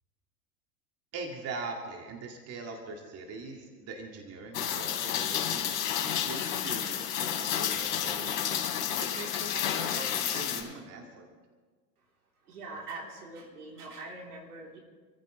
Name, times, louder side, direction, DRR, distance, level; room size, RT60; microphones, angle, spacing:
voice 1, 1.1-8.5 9.0-11.3, right 3 dB, 30° right, 2 dB, 2.3 m, -42 dB
Rain, 4.5-10.6, left 9 dB, 60° left, 3.1 m, -31 dB
voice 2, 12.4-14.8, right 2 dB, 70° right, -1 dB, 3.7 m, -43 dB
28.5 x 14.5 x 3.3 m, 1.4 s
figure-of-eight pair, 85°, 46 cm